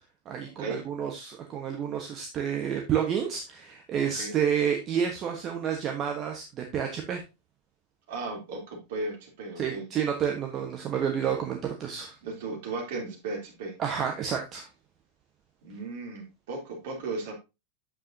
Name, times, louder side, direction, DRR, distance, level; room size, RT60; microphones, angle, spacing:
voice 1, 0.2-7.2 9.6-12.2 13.8-14.7, right 8 dB, 30° right, 2 dB, 1.3 m, -30 dB
voice 2, 4.0-4.4 8.1-9.8 12.2-13.8 15.6-17.3, right 3 dB, 55° right, 0 dB, 3.4 m, -36 dB
8.8 x 7.4 x 2.8 m, 0.25 s
figure-of-eight pair, 90°, 0 cm